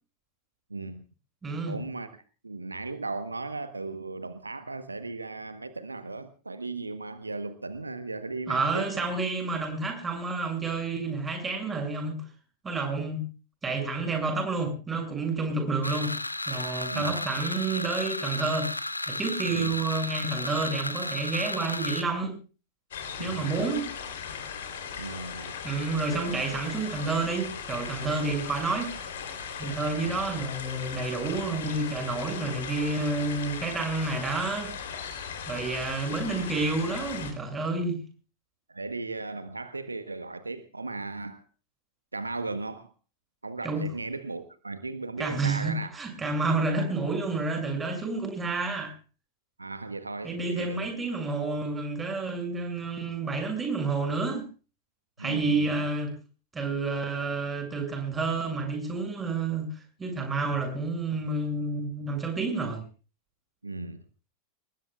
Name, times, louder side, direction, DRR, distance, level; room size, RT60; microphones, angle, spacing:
voice 1, 0.7-1.0 1.6-2.1 2.4-9.0 16.9-17.1 19.5-19.7 23.2-23.5 25.0-25.5 25.9-26.3 30.0-30.3 35.4-35.6 38.7-41.4 42.1-42.9 43.4-45.9 49.6-51.2 55.2-55.8 63.6-64.0, right 3 dB, 80° right, 11 dB, 1.1 m, -36 dB
voice 2, 1.4-1.8 8.5-12.2 12.6-13.3 13.6-16.1 16.5-18.7 19.1-22.4 23.2-23.9 25.6-28.9 29.6-34.7 35.5-38.0 43.6-43.8 45.2-48.9 50.2-54.4 55.2-56.1 56.5-62.8, right 3 dB, 15° right, 4 dB, 7.1 m, -29 dB
sound 1, 15.8-22.0, left 2 dB, 85° left, 1.0 m, -33 dB
sound 2, 22.9-37.3, left 7 dB, 60° left, 3.6 m, -38 dB
28.5 x 20.0 x 2.4 m, 0.35 s
figure-of-eight pair, 90°, 0 cm